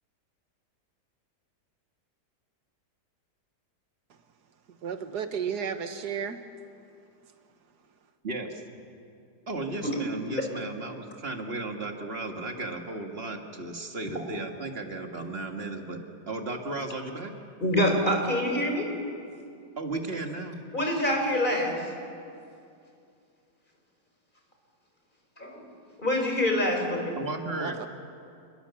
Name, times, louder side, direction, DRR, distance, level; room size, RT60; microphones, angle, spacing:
voice 1, 4.8-6.4 27.6-27.9, right 7 dB, 75° right, 8 dB, 1.9 m, -32 dB
voice 2, 8.2-8.6 9.5-16.0 16.3-17.3 19.8-20.6 27.2-27.8, right 2 dB, 35° right, 3 dB, 2.1 m, -35 dB
voice 3, 17.6-18.9 20.7-21.9 25.4-25.7 26.0-27.2, left 1 dB, 30° left, 2 dB, 4.4 m, -26 dB
29.5 x 21.0 x 7.2 m, 2.5 s
omnidirectional pair, 1.8 m